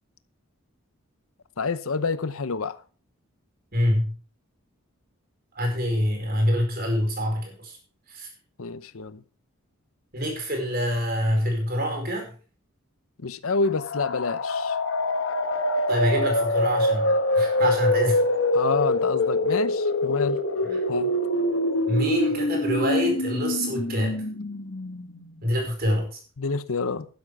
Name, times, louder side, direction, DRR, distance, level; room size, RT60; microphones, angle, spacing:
voice 1, 1.6-2.7 8.6-9.2 13.2-14.7 18.5-20.4 20.9-21.1 26.4-27.1, left 4 dB, 75° left, 0.8 m, -28 dB
voice 2, 3.7-4.1 5.5-7.8 8.1-8.3 10.1-12.3 15.9-18.2 20.6-20.8 21.9-24.2 25.4-26.2, equal, 45° right, 4.7 m, -26 dB
sound 1, 13.7-25.3, left 1 dB, 60° left, 1.4 m, -25 dB
12.0 x 10.0 x 4.8 m
head